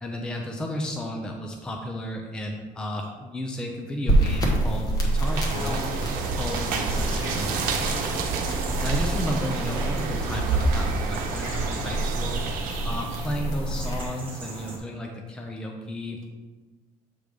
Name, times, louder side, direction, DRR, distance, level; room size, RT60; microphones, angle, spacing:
voice 1, 0.0-5.8 6.4-7.8 8.8-12.4 12.8-16.3, equal, 5° left, 2 dB, 0.4 m, -33 dB
sound 1, 4.1-14.0, right 1 dB, 25° left, 1.1 m, -28 dB
sound 2, 5.0-13.4, right 4 dB, 80° right, 1.0 m, -30 dB
sound 3, 5.5-14.8, right 1 dB, 15° right, 1.3 m, -39 dB
7.6 x 3.4 x 5.0 m, 1.3 s
cardioid pair, 175°, 15 cm